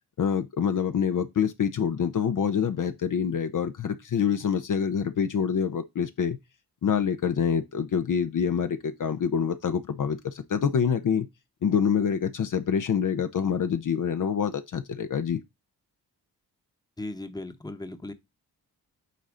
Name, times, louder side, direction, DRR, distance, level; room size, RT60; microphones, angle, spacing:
voice 1, 0.2-6.4 6.8-11.3 11.6-15.4, left 7 dB, 55° left, 0.8 m, -26 dB
voice 2, 17.0-18.1, left 2 dB, 10° left, 1.1 m, -37 dB
8.5 x 4.2 x 3.8 m
cardioid pair, 70°, 38 cm